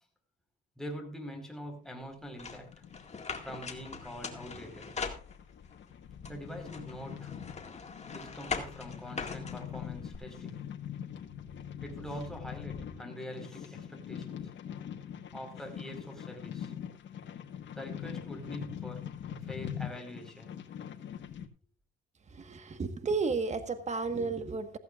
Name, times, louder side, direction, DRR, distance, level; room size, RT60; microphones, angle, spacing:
voice 1, 0.8-2.7 3.4-5.0 6.3-7.3 8.1-10.6 11.8-14.9 15.3-16.7 17.7-19.1 19.4-20.6, equal, ahead, 4.6 m, -44 dB
sound 1, 2.2-21.5, left 9 dB, 65° left, 1.5 m, -43 dB
sound 2, 2.4-5.7 6.2-10.2, left 5 dB, 35° left, 2.1 m, -41 dB
voice 2, 22.3-24.8, right 4 dB, 35° right, 1.5 m, -32 dB
16.0 x 15.0 x 2.5 m
cardioid pair, 90°, 20 cm